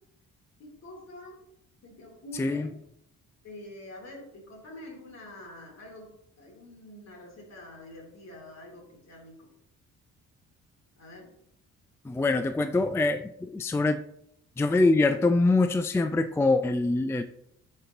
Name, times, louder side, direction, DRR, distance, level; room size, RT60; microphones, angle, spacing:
voice 1, 0.6-1.4 1.8-2.8 3.4-9.5 11.0-11.3 12.5-12.7, left 1 dB, 60° left, -1 dB, 3.3 m, -46 dB
voice 2, 2.4-2.7 12.0-14.0 14.6-17.2, left 2 dB, 10° left, 9 dB, 0.4 m, -24 dB
13.0 x 5.4 x 2.9 m, 0.74 s
cardioid pair, 90°, 30 cm